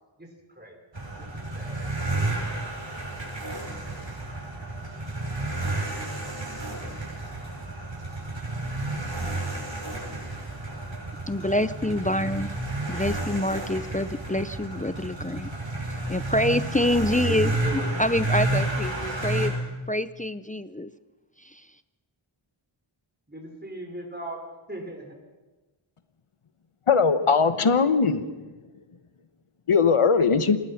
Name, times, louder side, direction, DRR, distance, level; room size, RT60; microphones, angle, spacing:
voice 1, 0.2-1.3 1.5-1.9 17.3-17.9 23.3-25.2, right 1 dB, 20° right, 1 dB, 5.7 m, -38 dB
sound 1, 0.9-19.5, right 2 dB, 60° right, 6.6 m, -31 dB
voice 2, 11.3-12.5 12.9-15.5 15.8-17.5 18.0-19.5 19.9-20.9 21.4-21.7, left 1 dB, 15° left, 13 dB, 0.6 m, -26 dB
voice 3, 26.9-28.3 29.7-30.6, left 5 dB, 90° left, 11 dB, 1.2 m, -20 dB
26.5 x 20.5 x 5.9 m, 1.2 s
wide cardioid pair, 45°, 50 cm